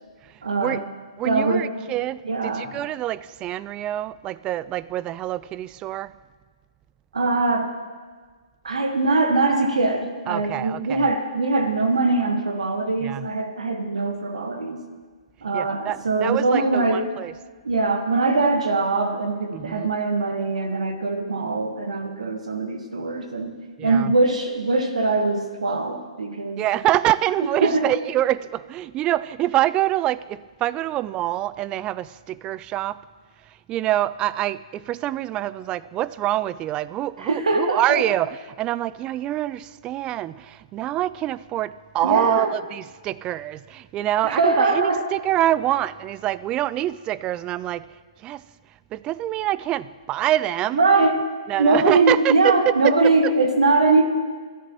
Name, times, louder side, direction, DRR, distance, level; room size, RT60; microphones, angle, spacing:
voice 1, 0.4-0.8 1.2-1.7 2.2-2.7 7.1-7.7 8.6-14.8 15.4-17.0 17.6-23.5 23.8-26.6 27.6-27.9 37.2-38.0 42.0-42.5 44.2-45.1 50.7-51.2 51.6-54.1, right 3 dB, 75° right, 1.4 m, -22 dB
voice 2, 1.2-6.1 10.3-11.1 13.0-13.3 15.5-17.3 19.5-19.9 23.8-24.1 26.6-33.0 33.7-47.9 48.2-48.4 48.9-50.8 51.5-53.0 53.2-53.3, right 14 dB, 25° right, 0.4 m, -25 dB
27.5 x 13.5 x 3.0 m
figure-of-eight pair, 120°, 4 cm